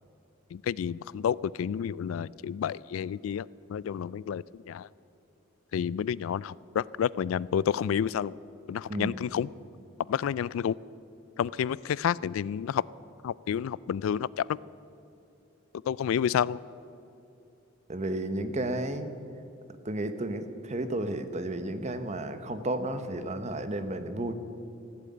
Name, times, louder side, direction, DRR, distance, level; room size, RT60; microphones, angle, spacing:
voice 1, 0.5-4.9 5.7-8.3 8.7-9.5 10.1-10.8 11.4-12.8 13.2-14.6 15.8-16.6, left 8 dB, 90° left, 22 dB, 0.3 m, -30 dB
voice 2, 8.9-9.2 17.9-19.1 19.8-24.3, right 1 dB, 35° right, 9 dB, 0.8 m, -32 dB
15.0 x 7.9 x 8.6 m, 2.7 s
head